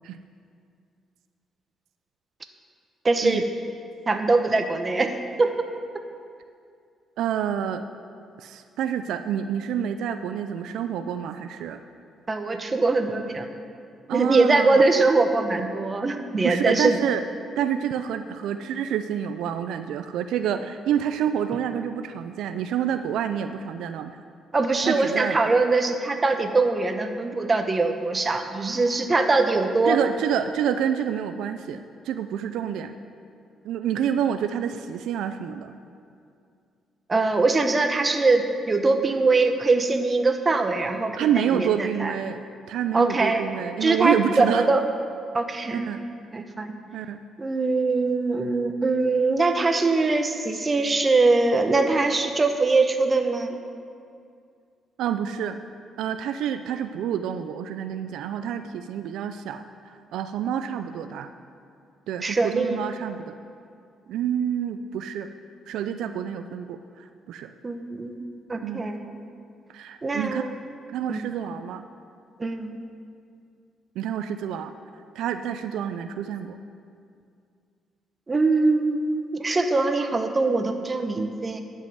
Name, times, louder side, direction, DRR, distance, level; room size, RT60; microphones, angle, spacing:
voice 1, 3.0-3.4 4.1-5.7 12.3-13.5 14.1-17.0 24.5-30.0 37.1-42.1 42.9-43.5 43.8-44.8 45.3-45.9 46.3-46.7 47.4-53.6 62.2-62.8 67.6-68.2 68.5-69.1 70.0-70.6 71.1-71.2 72.4-72.7 78.3-81.6, right 3 dB, 30° right, 6 dB, 0.9 m, -22 dB
voice 2, 7.2-7.8 8.4-11.8 14.1-14.9 16.4-17.2 17.6-24.2 24.9-25.4 29.3-29.4 29.8-32.9 33.6-35.8 41.1-42.4 42.7-44.7 45.7-46.0 46.9-47.2 55.0-55.6 56.0-61.3 62.1-63.4 64.1-65.3 65.7-67.5 68.6-68.8 69.7-70.4 70.9-71.9 74.0-74.7 75.2-76.6, right 9 dB, 85° right, 9 dB, 0.4 m, -28 dB
11.0 x 5.4 x 7.9 m, 2.4 s
cardioid pair, 90°, 0 cm